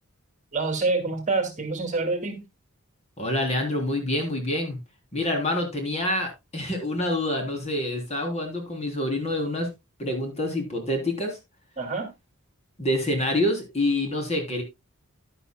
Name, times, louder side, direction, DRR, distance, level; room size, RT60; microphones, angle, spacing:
voice 1, 0.5-2.4 11.8-12.1, right 3 dB, 35° right, 2.4 m, -26 dB
voice 2, 3.2-4.8 5.1-9.7 10.0-11.4 12.8-14.6, left 1 dB, 30° left, 3.5 m, -27 dB
11.5 x 11.0 x 2.2 m
head